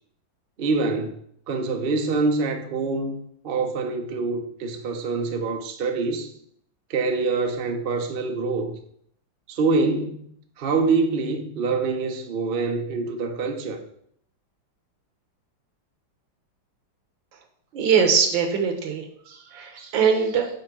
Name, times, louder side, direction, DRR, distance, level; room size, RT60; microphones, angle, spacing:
voice 1, 0.6-1.2 1.5-3.2 3.4-6.3 6.9-8.8 9.5-10.3 10.6-13.8, right 3 dB, 60° right, 0.6 m, -25 dB
voice 2, 17.7-20.5, right 6 dB, 75° right, 1.7 m, -22 dB
5.7 x 4.3 x 6.0 m
omnidirectional pair, 2.1 m